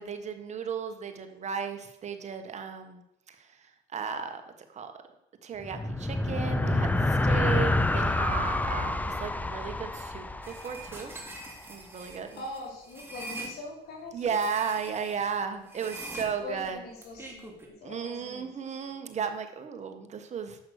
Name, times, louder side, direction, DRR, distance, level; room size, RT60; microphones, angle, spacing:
voice 1, 0.0-3.0 3.3-3.5 3.9-4.4 4.7-4.9 5.4-11.1 11.7-12.4 14.1-16.8 17.8-20.7, right 6 dB, 40° right, 7 dB, 1.5 m, -34 dB
sound 1, 5.6-11.3, left 2 dB, 10° left, 0.7 m, -28 dB
sound 2, 10.4-13.5 14.2-15.2 15.7-17.7, right 2 dB, 15° right, 2.9 m, -43 dB
voice 2, 12.3-14.4 16.4-17.5 17.8-18.9, left 2 dB, 70° left, -1 dB, 5.0 m, -42 dB
11.0 x 7.9 x 6.6 m, 0.83 s
cardioid pair, 110°, 17 cm